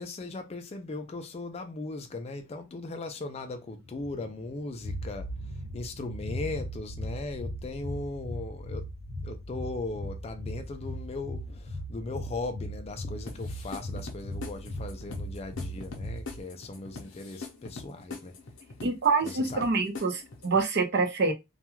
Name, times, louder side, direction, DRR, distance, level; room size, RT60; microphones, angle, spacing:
voice 1, 0.0-5.3 5.7-8.9 9.2-18.3 19.2-19.7, left 2 dB, 30° left, 0.4 m, -38 dB
sound 1, 3.8-16.4, equal, 85° right, 1.3 m, -38 dB
sound 2, 13.3-20.6, left 4 dB, 70° left, 0.7 m, -43 dB
voice 2, 18.8-21.3, right 4 dB, 55° right, 0.7 m, -26 dB
2.3 x 2.2 x 3.0 m
head